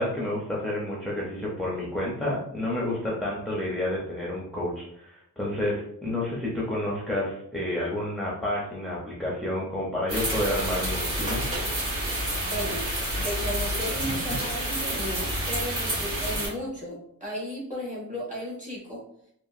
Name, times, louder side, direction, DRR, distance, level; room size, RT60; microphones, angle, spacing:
voice 1, 0.0-11.5, left 1 dB, ahead, -6 dB, 0.5 m, -30 dB
sound 1, 10.1-16.5, right 1 dB, 70° right, 1.5 m, -29 dB
voice 2, 12.4-12.8 13.2-19.0, equal, 20° right, -5 dB, 1.2 m, -34 dB
2.9 x 2.5 x 2.4 m, 0.72 s
wide cardioid pair, 130°, 35 cm